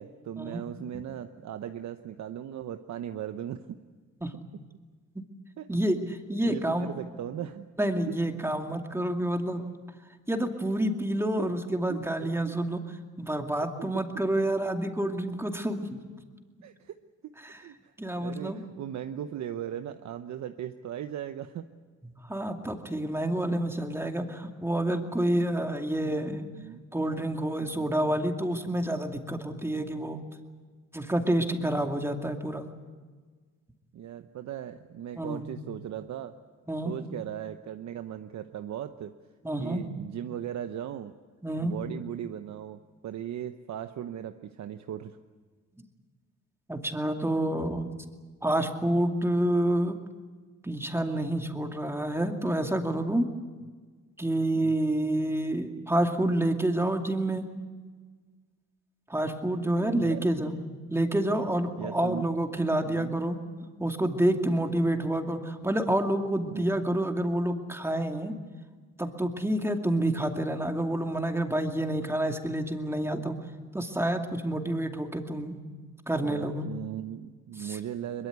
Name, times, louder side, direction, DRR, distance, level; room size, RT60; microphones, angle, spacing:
voice 1, 0.0-3.8 5.6-5.7 6.5-7.7 11.9-12.6 13.8-14.0 16.6-17.0 17.2-17.9 18.2-21.7 26.5-26.8 27.6-27.9 33.9-36.3 36.8-39.1 39.6-41.1 41.6-45.2 53.6-53.7 54.5-54.7 59.8-60.2 61.5-62.3 62.8-63.1 64.5-64.6 66.5-66.6 76.2-78.3, right 10 dB, 65° right, 8 dB, 1.0 m, -38 dB
voice 2, 5.7-6.9 7.8-9.7 10.3-12.8 13.2-16.0 17.4-17.6 18.0-18.6 22.2-26.5 26.9-30.2 30.9-32.7 35.2-35.4 36.7-36.9 39.4-39.8 41.4-41.7 46.7-47.9 48.4-50.0 50.6-53.3 54.2-57.5 59.1-60.5 60.9-68.3 69.0-73.4 73.7-75.6 76.1-76.7 77.6-77.8, right 1 dB, 10° right, 4 dB, 2.4 m, -28 dB
22.5 x 21.5 x 8.2 m, 1.5 s
cardioid pair, 90°, 30 cm